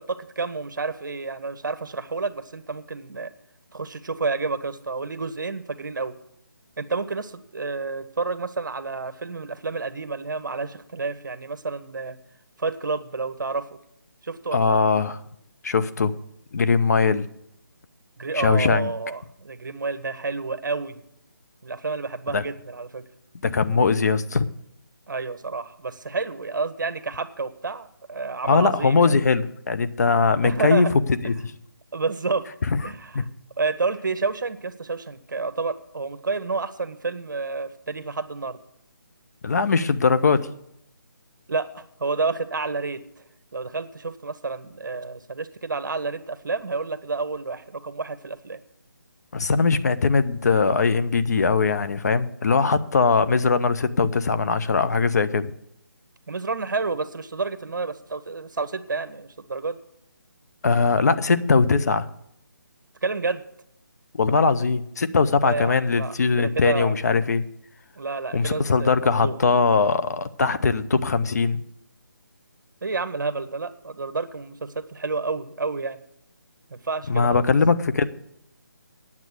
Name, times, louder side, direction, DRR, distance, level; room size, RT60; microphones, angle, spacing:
voice 1, 0.0-3.3 3.7-6.2 6.8-12.2 12.6-13.7 14.2-14.8 18.2-21.0 21.6-23.0 25.1-29.1 30.4-30.9 31.9-32.5 32.8-33.3 33.6-38.6 41.5-43.0 43.5-48.6 56.3-59.8 63.0-63.4 65.4-67.0 68.0-69.4 72.8-76.0 76.7-77.5, right 4 dB, 65° right, 11 dB, 1.0 m, -30 dB
voice 2, 14.5-15.2 15.6-16.1 16.5-17.3 18.3-18.9 22.3-22.4 23.4-24.4 28.4-31.5 32.7-33.2 39.4-40.5 49.3-55.5 60.6-62.1 64.2-67.4 68.3-71.6 77.1-78.1, left 4 dB, 50° left, 12 dB, 0.7 m, -21 dB
9.7 x 7.4 x 7.9 m, 0.76 s
figure-of-eight pair, 160°, 11 cm